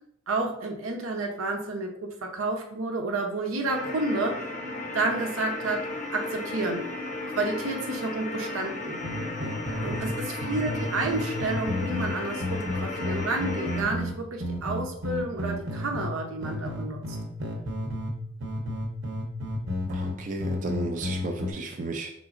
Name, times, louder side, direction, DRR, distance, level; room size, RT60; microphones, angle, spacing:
voice 1, 0.3-4.5 4.9-6.9 7.4-9.0 9.8-17.2, right 2 dB, 90° right, 2 dB, 0.8 m, -30 dB
sound 1, 3.7-13.8, left 2 dB, 35° left, 0.6 m, -34 dB
sound 2, 9.0-10.2 10.4-16.1 16.4-18.2 18.4-21.5, left 1 dB, 60° right, 0.9 m, -32 dB
voice 2, 19.9-22.1, right 2 dB, 40° right, 3 dB, 0.4 m, -33 dB
5.1 x 3.8 x 2.5 m, 0.74 s
head